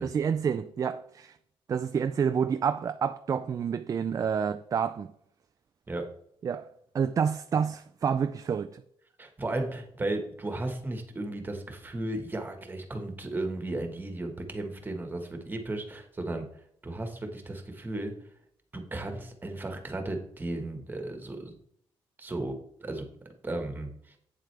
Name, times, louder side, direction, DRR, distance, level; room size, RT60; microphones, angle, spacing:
voice 1, 0.0-1.4 1.7-5.1 6.4-6.7 6.9-8.8, right 7 dB, 35° right, 0.4 m, -28 dB
voice 2, 9.2-16.5 16.8-18.1 18.7-21.6 22.2-22.5 22.8-23.0 23.4-24.2, right 2 dB, 20° right, 1.5 m, -35 dB
8.7 x 7.5 x 3.4 m
cardioid pair, 130°, 10 cm